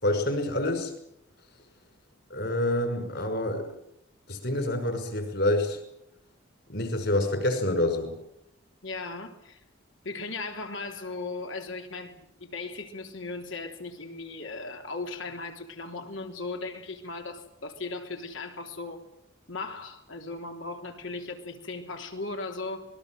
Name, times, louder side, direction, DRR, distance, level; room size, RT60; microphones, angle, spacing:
voice 1, 0.0-0.9 2.3-3.8 4.3-5.8 6.7-8.2, left 1 dB, 55° left, 5.7 m, -27 dB
voice 2, 8.8-9.6 10.0-19.0 19.5-22.9, left 3 dB, 70° left, 3.5 m, -37 dB
26.5 x 21.0 x 7.8 m
head